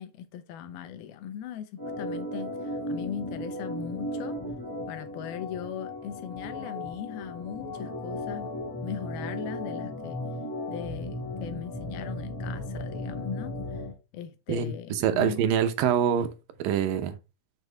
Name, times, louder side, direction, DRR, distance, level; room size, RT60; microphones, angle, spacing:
voice 1, 0.0-4.4 4.9-8.5 8.8-10.2 10.7-13.8 14.1-15.4, left 9 dB, 90° left, 2.9 m, -39 dB
Organ, 1.8-13.9, left 1 dB, 15° left, 0.7 m, -35 dB
voice 2, 14.5-16.3 16.6-17.2, right 8 dB, 75° right, 2.5 m, -25 dB
8.3 x 6.2 x 3.4 m
omnidirectional pair, 4.2 m